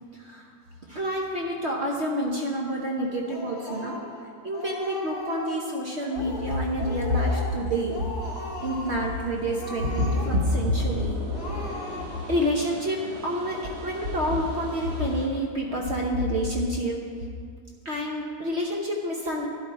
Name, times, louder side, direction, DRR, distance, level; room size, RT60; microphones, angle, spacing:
voice 1, 0.1-0.5 0.9-4.0 4.4-8.0 8.6-11.2 12.3-17.0 17.8-19.5, equal, 50° right, -1 dB, 1.2 m, -27 dB
Speech, 3.3-4.2 4.5-5.7 6.0-6.5 6.8-7.6 7.9-9.1 9.5-10.6 10.9-11.0 11.3-12.3, left 2 dB, 45° left, 3.4 m, -37 dB
sound 1, 6.1-15.3, right 1 dB, 65° right, 2.4 m, -42 dB
12.0 x 11.0 x 4.2 m, 2.2 s
omnidirectional pair, 1.6 m